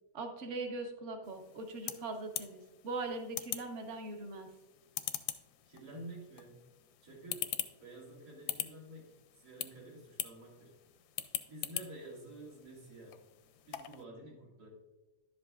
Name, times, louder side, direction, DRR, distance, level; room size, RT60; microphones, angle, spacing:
voice 1, 0.1-4.5, right 3 dB, 50° right, 5 dB, 1.2 m, -41 dB
sound 1, 1.2-14.0, left 11 dB, 80° left, 1.1 m, -44 dB
voice 2, 5.7-6.7 7.0-10.8 11.5-13.2 13.6-14.7, right 1 dB, 80° right, -3 dB, 2.9 m, -50 dB
11.0 x 7.7 x 2.4 m, 1.1 s
omnidirectional pair, 1.7 m